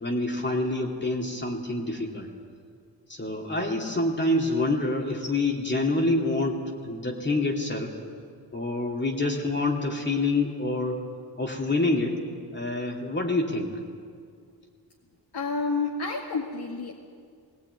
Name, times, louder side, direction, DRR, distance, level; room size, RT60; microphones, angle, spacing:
voice 1, 0.0-2.3 3.1-7.9 8.5-11.0 11.4-12.1 12.5-13.8, left 2 dB, 25° left, -1 dB, 2.7 m, -27 dB
voice 2, 15.3-16.9, left 4 dB, 65° left, -2 dB, 2.2 m, -29 dB
20.0 x 19.0 x 9.4 m, 2.2 s
wide cardioid pair, 110°, 42 cm